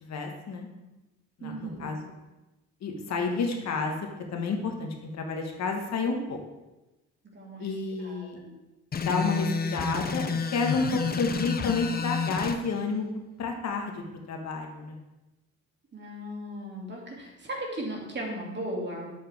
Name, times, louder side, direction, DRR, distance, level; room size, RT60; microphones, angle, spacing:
voice 1, 0.0-0.7 1.4-2.0 2.8-4.0 4.3-6.4 7.6-8.4 9.0-10.2 10.5-13.0 13.4-15.0, left 4 dB, 65° left, 2 dB, 1.4 m, -30 dB
voice 2, 1.4-2.0 7.3-7.7 8.0-8.6 15.9-19.1, right 1 dB, 35° right, -1 dB, 2.5 m, -37 dB
sound 1, 8.9-12.6, left 5 dB, 30° left, 0.7 m, -30 dB
8.6 x 7.0 x 3.5 m, 1.0 s
cardioid pair, 90°, 30 cm